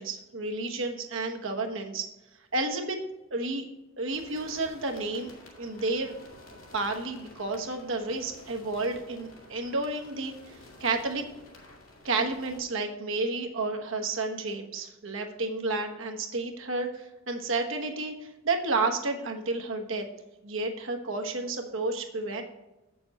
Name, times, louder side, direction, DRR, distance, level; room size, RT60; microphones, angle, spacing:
voice 1, 0.0-2.1 2.5-3.0 3.3-3.7 4.0-5.3 5.6-6.1 6.7-10.3 10.8-11.2 12.0-18.1 18.4-20.0 20.4-22.4, right 3 dB, 70° right, 3 dB, 1.2 m, -31 dB
sound 1, 4.1-12.6, left 2 dB, 80° left, 2.4 m, -51 dB
8.1 x 6.9 x 4.2 m, 0.98 s
head